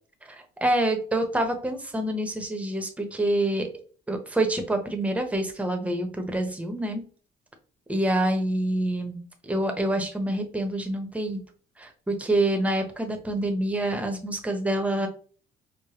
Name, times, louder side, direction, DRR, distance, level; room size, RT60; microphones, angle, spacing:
voice 1, 0.2-3.7 4.1-7.0 7.9-9.2 9.4-11.4 11.8-15.1, right 1 dB, 10° right, 4 dB, 0.8 m, -26 dB
4.8 x 2.1 x 2.9 m, 0.41 s
cardioid pair, 110°, 17 cm